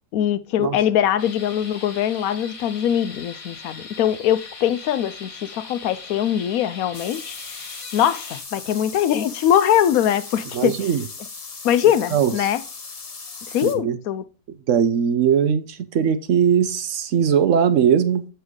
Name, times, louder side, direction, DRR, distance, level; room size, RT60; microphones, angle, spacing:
voice 1, 0.1-7.7 7.9-10.7 11.6-12.6 13.5-14.2, left 10 dB, 85° left, 1.1 m, -22 dB
sound 1, 1.2-8.4, left 4 dB, 55° left, 1.9 m, -40 dB
sound 2, 6.9-13.7, left 4 dB, 30° left, 0.8 m, -38 dB
voice 2, 10.5-11.0 12.1-12.3 13.6-14.0 14.7-18.3, right 8 dB, 65° right, 0.9 m, -20 dB
7.9 x 5.6 x 3.6 m
omnidirectional pair, 1.5 m